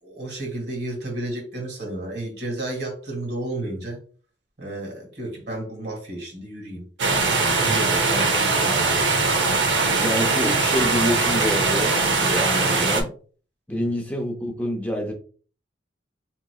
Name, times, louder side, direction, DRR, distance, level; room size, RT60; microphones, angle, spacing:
voice 1, 0.0-4.0 4.6-6.8 7.6-9.3, right 1 dB, 60° right, 1 dB, 1.7 m, -32 dB
sound 1, 7.0-13.0, right 3 dB, 80° right, 0.8 m, -21 dB
voice 2, 10.0-13.1 13.7-15.1, equal, 10° left, 1 dB, 0.4 m, -27 dB
3.8 x 2.9 x 2.3 m, 0.41 s
head